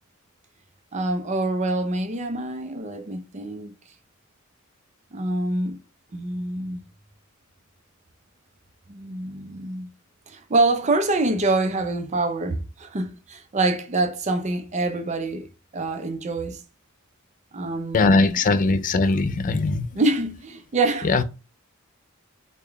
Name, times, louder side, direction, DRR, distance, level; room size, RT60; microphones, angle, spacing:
voice 1, 0.9-3.7 5.1-5.8 6.1-6.8 8.9-9.9 10.3-15.5 15.7-16.6 17.5-18.4 19.9-21.2, right 2 dB, 35° right, 0.5 m, -26 dB
voice 2, 17.9-19.9 21.0-21.2, left 3 dB, 40° left, 0.3 m, -20 dB
3.5 x 2.1 x 3.4 m
head